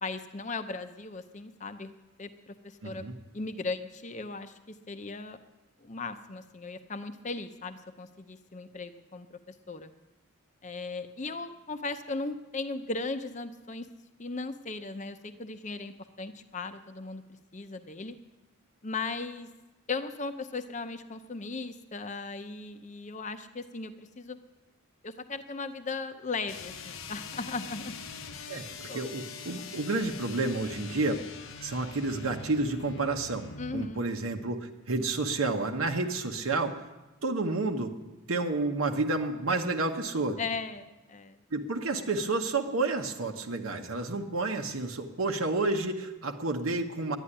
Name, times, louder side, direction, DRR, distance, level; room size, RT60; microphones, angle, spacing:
voice 1, 0.0-1.9 2.2-3.0 3.3-5.4 5.8-9.9 10.6-13.9 14.2-17.2 17.5-18.2 18.8-19.5 19.9-24.4 25.0-27.9 28.4-28.6 28.9-29.0 33.6-34.1 40.4-41.4, left 3 dB, 35° left, 9 dB, 0.7 m, -37 dB
voice 2, 2.8-3.1 28.5-31.2 31.6-36.8 37.2-37.9 38.3-40.4 41.5-47.2, right 3 dB, 75° right, 2 dB, 1.0 m, -30 dB
sound 1, 26.4-34.0, left 5 dB, 65° left, 0.8 m, -43 dB
11.5 x 10.0 x 9.9 m, 1.1 s
head